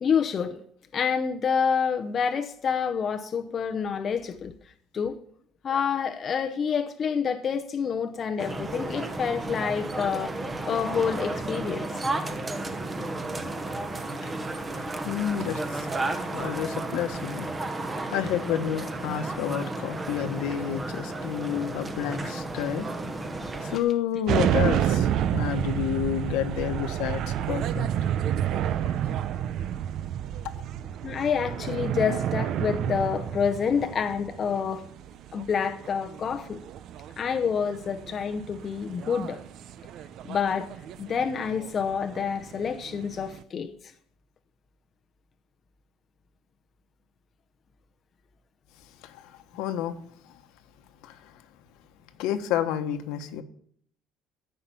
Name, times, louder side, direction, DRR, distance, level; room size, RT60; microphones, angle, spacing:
voice 1, 0.0-0.6 0.9-4.5 4.9-5.2 5.6-10.3 10.7-12.1 31.0-34.8 35.3-36.6 37.2-39.4 40.2-40.7 41.0-43.7, left 6 dB, 30° left, 0.7 m, -28 dB
sound 1, 8.4-23.8, right 2 dB, 15° right, 1.0 m, -33 dB
voice 2, 14.7-15.9 16.1-17.5 18.1-22.9 23.6-27.9 49.0-49.9 51.0-51.3 52.2-53.4, left 10 dB, 70° left, 1.3 m, -30 dB
sound 2, 24.3-43.4, right 10 dB, 45° right, 0.6 m, -30 dB
14.0 x 5.8 x 9.1 m
cardioid pair, 165°, 0 cm